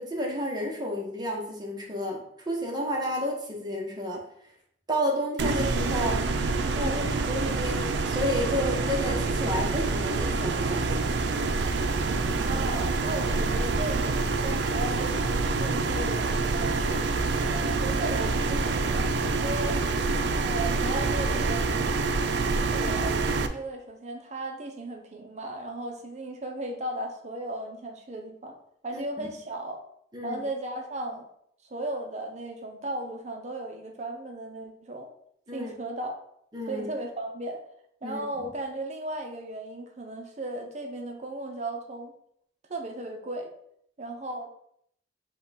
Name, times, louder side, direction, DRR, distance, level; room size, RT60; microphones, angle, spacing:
voice 1, 0.0-4.2 4.9-6.2 6.7-11.1 28.9-29.3 30.1-30.4 35.5-35.7 36.5-36.9 38.0-38.5, equal, 25° right, -1 dB, 0.9 m, -31 dB
sound 1, 5.4-23.5, right 3 dB, 85° right, 0.4 m, -26 dB
voice 2, 12.4-16.9 17.4-19.1 19.4-19.8 20.4-21.9 22.6-28.6 28.8-29.8 30.2-31.3 31.7-35.1 35.5-36.1 36.7-37.6 38.0-42.1 42.7-43.5 44.0-44.5, right 2 dB, 40° right, 3 dB, 0.6 m, -36 dB
5.6 x 2.3 x 4.0 m, 0.69 s
head